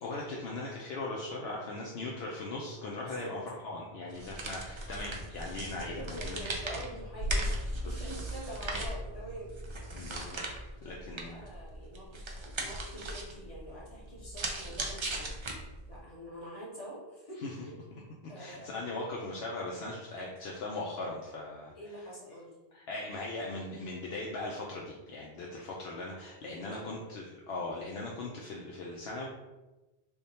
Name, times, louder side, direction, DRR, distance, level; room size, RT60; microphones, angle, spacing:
voice 1, 0.0-6.4 7.8-8.2 9.9-10.4 10.8-11.5 17.4-17.5 17.9-21.7 22.7-29.3, left 2 dB, 70° left, -3 dB, 0.8 m, -39 dB
sound 1, 2.2-11.7, right 3 dB, 50° left, 1.2 m, -55 dB
voice 2, 2.9-3.3 5.7-9.6 10.8-15.3 15.9-17.8 18.3-18.8 21.7-22.5 26.3-27.2, equal, 35° left, -6 dB, 1.2 m, -46 dB
sound 2, 4.1-16.0, right 1 dB, 45° right, 0.4 m, -38 dB
3.5 x 2.2 x 4.0 m, 1.1 s
omnidirectional pair, 1.1 m